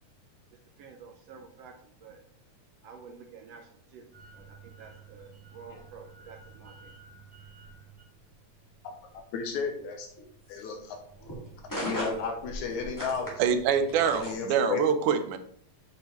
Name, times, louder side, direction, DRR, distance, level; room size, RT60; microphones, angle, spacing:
voice 1, 0.5-2.2 2.8-4.0 4.3-7.0, right 5 dB, 75° right, 3 dB, 1.5 m, -50 dB
sound 1, 4.1-14.4, equal, 10° left, 1.2 m, -42 dB
voice 2, 9.3-10.1 10.5-11.0 11.8-13.3 14.1-14.8, left 5 dB, 80° left, 3 dB, 2.2 m, -33 dB
voice 3, 13.4-15.4, right 7 dB, 90° right, 9 dB, 2.2 m, -25 dB
8.8 x 5.2 x 3.0 m, 0.63 s
omnidirectional pair, 3.4 m